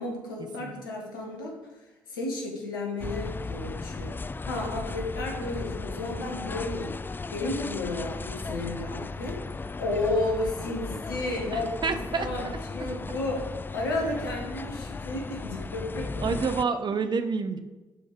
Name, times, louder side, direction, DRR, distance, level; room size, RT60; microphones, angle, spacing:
voice 1, 0.0-1.5 2.1-6.9 7.3-9.4 9.8-12.5 12.7-16.2, left 2 dB, 80° left, 0 dB, 1.7 m, -32 dB
sound 1, 3.0-16.6, left 3 dB, 20° left, 0.3 m, -36 dB
voice 2, 11.5-12.3 16.2-17.6, right 5 dB, 40° right, 9 dB, 1.0 m, -28 dB
12.0 x 5.1 x 5.1 m, 1.2 s
figure-of-eight pair, 40°, 11 cm